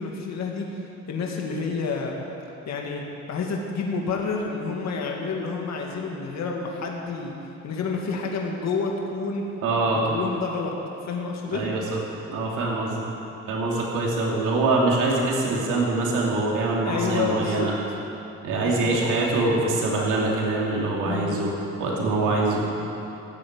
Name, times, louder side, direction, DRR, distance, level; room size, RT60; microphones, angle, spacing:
voice 1, 0.0-2.2 2.7-7.3 7.6-9.4 10.0-10.7 11.0-11.7 16.9-17.7 18.6-19.0 21.0-21.4, left 4 dB, 60° left, 0 dB, 2.1 m, -29 dB
voice 2, 9.6-10.0 11.5-12.0 12.3-13.0 13.5-17.7 18.4-21.5 21.8-22.6, right 2 dB, 90° right, -3 dB, 2.8 m, -24 dB
15.0 x 7.8 x 9.8 m, 2.9 s
cardioid pair, 90°, 30 cm